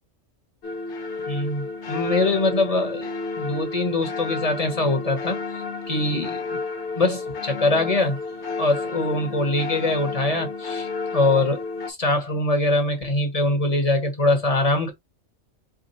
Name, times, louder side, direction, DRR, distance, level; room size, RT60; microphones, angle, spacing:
sound 1, 0.6-11.9, left 4 dB, 65° left, 1.3 m, -31 dB
voice 1, 1.3-3.1 3.4-6.6 7.0-8.2 8.6-10.9 11.1-11.6 11.9-14.9, left 2 dB, 30° left, 1.3 m, -23 dB
5.0 x 2.4 x 4.0 m
omnidirectional pair, 1.3 m